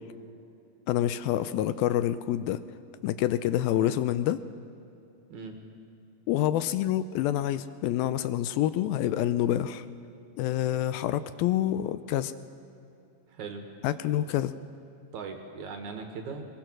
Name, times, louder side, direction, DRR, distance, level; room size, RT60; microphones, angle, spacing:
voice 1, 0.9-2.6 3.0-4.4 6.3-9.9 10.4-12.3 13.8-14.5, left 12 dB, 80° left, 13 dB, 2.4 m, -27 dB
voice 2, 13.3-13.6 15.1-16.5, right 5 dB, 60° right, 5 dB, 2.5 m, -39 dB
21.5 x 21.0 x 6.1 m, 2.8 s
omnidirectional pair, 4.4 m